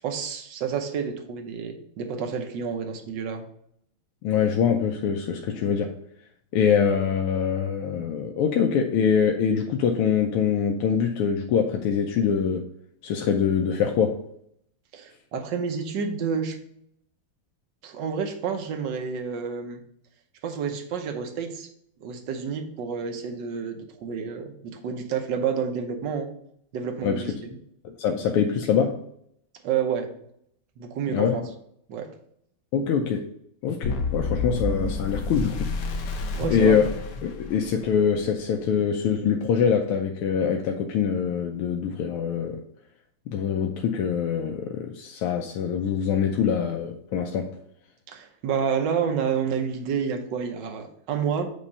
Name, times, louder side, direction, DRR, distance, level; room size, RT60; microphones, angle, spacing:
voice 1, 0.0-3.4 14.9-16.6 17.8-19.8 20.4-21.7 22.0-26.3 26.7-27.6 29.6-30.1 30.8-31.4 31.9-32.1 36.3-36.8 48.1-51.5, right 6 dB, 60° right, 5 dB, 1.4 m, -29 dB
voice 2, 4.2-6.0 6.5-12.7 13.0-14.2 27.0-27.2 27.8-29.0 31.1-31.4 32.7-33.3 33.6-35.7 36.5-36.8 37.2-42.6 43.3-47.5, left 7 dB, 90° left, 3 dB, 1.5 m, -24 dB
sound 1, 33.8-38.0, left 3 dB, 70° left, 0.8 m, -29 dB
8.6 x 3.0 x 5.3 m, 0.70 s
omnidirectional pair, 2.3 m